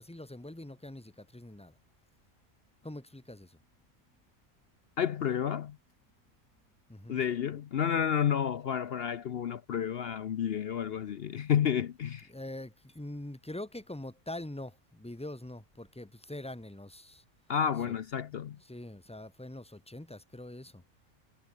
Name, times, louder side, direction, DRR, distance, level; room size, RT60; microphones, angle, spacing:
voice 1, 0.0-1.8 2.8-3.6 6.9-7.2 12.3-17.2 17.9-18.0 18.6-20.8, left 1 dB, 5° left, 0.9 m, -44 dB
voice 2, 5.0-5.8 7.1-12.3 17.5-18.6, left 8 dB, 55° left, 0.8 m, -30 dB
omnidirectional pair, 1.3 m